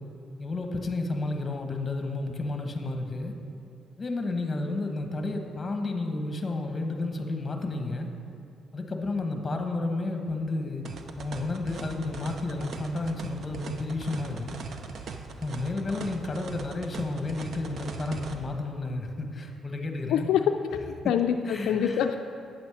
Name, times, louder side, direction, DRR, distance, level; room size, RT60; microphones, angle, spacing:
voice 1, 0.4-3.3 4.0-8.1 8.7-10.9 11.2-14.6 15.3-20.3 21.0-21.1 21.4-22.1, left 2 dB, 30° left, 4 dB, 1.1 m, -31 dB
sound 1, 10.9-18.4, right 4 dB, 60° right, 0.7 m, -40 dB
voice 2, 20.1-22.2, left 8 dB, 85° left, 6 dB, 0.3 m, -25 dB
8.9 x 7.3 x 4.8 m, 2.5 s
cardioid pair, 90°, 0 cm